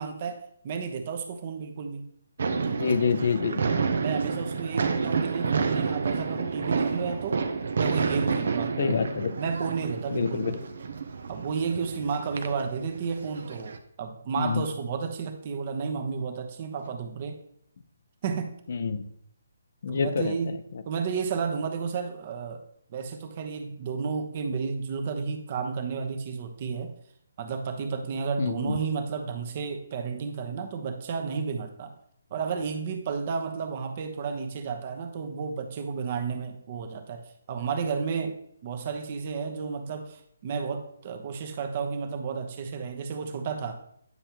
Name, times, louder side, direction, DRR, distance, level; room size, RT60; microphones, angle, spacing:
voice 1, 0.0-2.1 4.0-7.4 7.8-8.9 9.4-10.6 11.3-17.4 18.2-18.5 19.9-20.5 20.8-22.6 22.9-26.9 27.4-31.9 32.3-38.4 38.6-43.8, right 5 dB, 40° right, 5 dB, 1.0 m, -32 dB
voice 2, 2.4-3.6 8.8-9.3 10.1-10.6 14.4-14.6 18.7-19.0 19.8-20.6 28.4-28.8, left 5 dB, 55° left, 11 dB, 0.7 m, -27 dB
sound 1, 2.4-13.8, right 5 dB, 65° right, 0.7 m, -30 dB
9.6 x 5.5 x 3.0 m, 0.68 s
hypercardioid pair, 155°, 0 cm